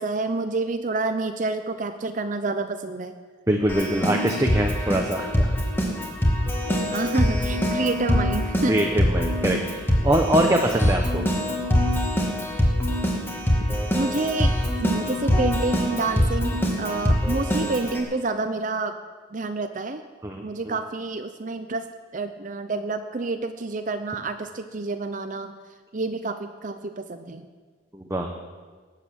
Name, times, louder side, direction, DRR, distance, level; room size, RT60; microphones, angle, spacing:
voice 1, 0.0-3.2 6.9-8.9 13.9-19.0 19.3-20.0 20.4-21.9 22.1-25.5 25.9-27.5, right 3 dB, 45° right, 8 dB, 0.7 m, -28 dB
voice 2, 3.5-5.6 8.7-11.3 20.2-20.7 27.9-28.4, right 1 dB, 15° right, 2 dB, 1.0 m, -24 dB
Keyboard (musical), 3.7-18.0, equal, 10° left, 2.2 m, -24 dB
19.0 x 8.4 x 7.5 m, 1.5 s
head